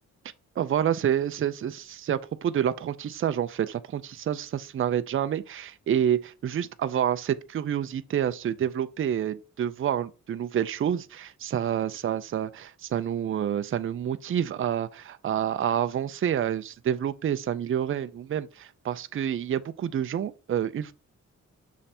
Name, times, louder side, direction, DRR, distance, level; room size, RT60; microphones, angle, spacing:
voice 1, 0.6-20.9, right 9 dB, 45° right, 0.4 m, -28 dB
7.3 x 3.3 x 4.2 m
wide cardioid pair, 165°, 31 cm